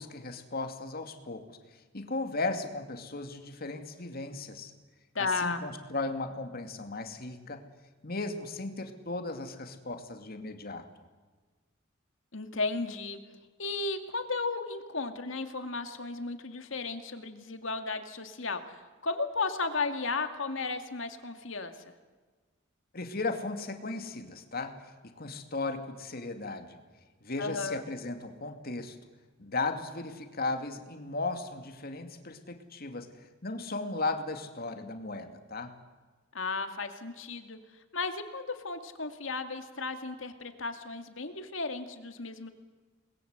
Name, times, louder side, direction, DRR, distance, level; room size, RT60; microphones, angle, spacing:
voice 1, 0.0-4.7 5.2-7.6 8.0-10.8 22.9-26.8 27.2-29.0 29.4-35.8, left 3 dB, 50° left, 6 dB, 2.5 m, -36 dB
voice 2, 5.1-5.6 12.3-13.2 13.6-21.7 27.4-27.8 36.3-37.6 37.9-42.5, left 3 dB, 70° left, 7 dB, 2.3 m, -34 dB
29.0 x 21.0 x 8.1 m, 1.4 s
head